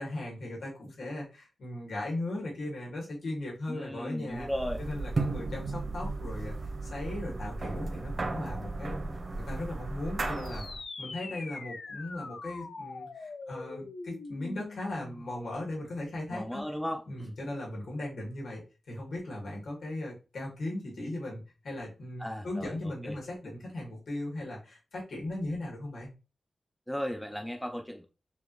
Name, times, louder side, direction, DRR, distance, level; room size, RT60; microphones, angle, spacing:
voice 1, 0.0-4.5 4.8-6.5 6.8-9.0 9.5-10.6 11.0-16.7 17.1-26.1, left 1 dB, 85° left, -3 dB, 1.8 m, -38 dB
voice 2, 3.7-4.8 16.3-17.3 22.2-23.2 26.9-28.1, equal, 5° left, 4 dB, 0.3 m, -36 dB
sound 1, 4.3-10.8, right 3 dB, 45° right, 1.0 m, -35 dB
sound 2, 10.3-15.4, left 3 dB, 55° left, 0.5 m, -43 dB
6.9 x 2.5 x 3.0 m, 0.32 s
wide cardioid pair, 160°, 0 cm